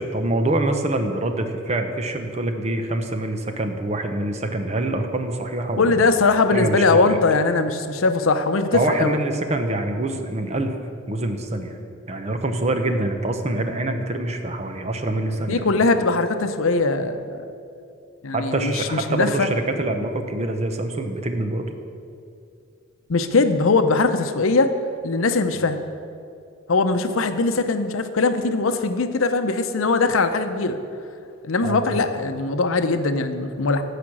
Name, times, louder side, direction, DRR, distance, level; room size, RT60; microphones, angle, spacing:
voice 1, 0.0-6.1 6.5-7.2 8.7-10.7 11.1-11.8 12.1-15.7 18.3-21.7 25.5-25.7 31.6-32.0, right 2 dB, 35° right, 6 dB, 0.8 m, -25 dB
voice 2, 5.8-9.1 15.5-17.5 18.2-19.5 23.1-24.7 25.0-25.9 26.7-30.8 31.4-33.8, left 3 dB, 75° left, 9 dB, 0.7 m, -21 dB
14.5 x 5.0 x 6.1 m, 2.5 s
head